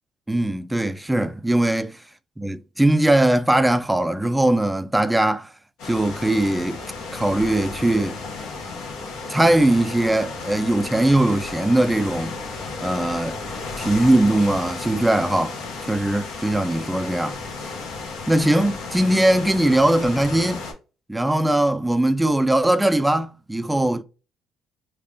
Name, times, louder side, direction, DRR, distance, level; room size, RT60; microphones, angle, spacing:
voice 1, 0.3-2.0 2.4-5.5 5.9-6.8 7.1-8.2 9.3-12.4 12.8-13.4 13.8-15.6 15.9-17.4 18.3-20.6 21.1-24.0, right 1 dB, 5° right, 0.4 m, -20 dB
sound 1, 5.8-20.7, left 4 dB, 80° left, 1.2 m, -33 dB
3.5 x 2.4 x 3.4 m
cardioid pair, 95°, 0 cm